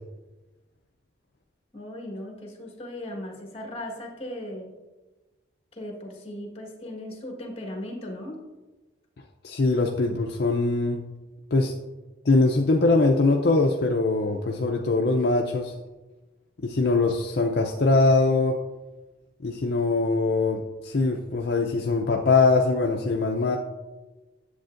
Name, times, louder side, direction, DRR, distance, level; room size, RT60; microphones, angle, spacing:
voice 1, 1.7-4.7 5.7-8.4, left 1 dB, 30° left, 0 dB, 1.4 m, -37 dB
voice 2, 9.4-11.0 11.5-11.7 12.2-15.8 16.6-18.6 19.4-23.6, left 3 dB, 50° left, 1 dB, 0.5 m, -22 dB
10.5 x 7.6 x 2.5 m, 1.2 s
head